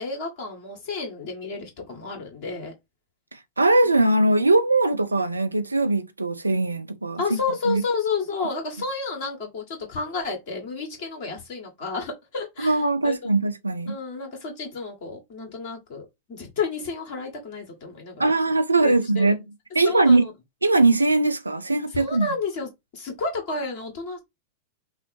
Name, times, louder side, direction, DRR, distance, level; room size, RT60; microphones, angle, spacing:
voice 1, 0.0-2.7 7.2-13.3 13.9-18.3 18.7-19.3 19.8-20.3 21.9-24.2, left 4 dB, 50° left, 2.1 m, -31 dB
voice 2, 3.6-7.4 7.7-7.8 12.6-14.0 18.2-19.4 19.7-20.3 20.6-22.3, right 2 dB, 80° right, 0.5 m, -20 dB
5.5 x 2.1 x 4.4 m
figure-of-eight pair, 90°, 0 cm